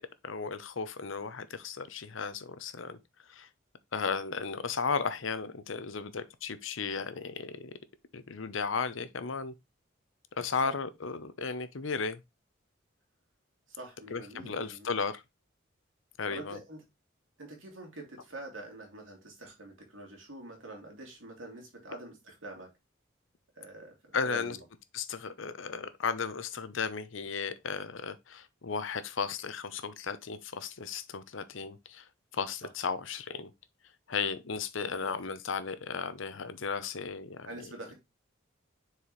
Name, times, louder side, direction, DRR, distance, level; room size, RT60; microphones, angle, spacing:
voice 1, 0.2-3.0 3.3-3.5 3.9-7.8 8.1-9.5 10.4-12.2 14.1-15.2 16.2-16.6 24.1-24.6 24.9-32.1 32.3-33.5 34.1-37.5, left 5 dB, 80° left, 0.8 m, -35 dB
voice 2, 13.7-15.0 16.3-16.8 17.4-22.7 23.5-24.6 37.4-37.9, right 2 dB, 85° right, 2.8 m, -45 dB
6.7 x 4.7 x 3.1 m
head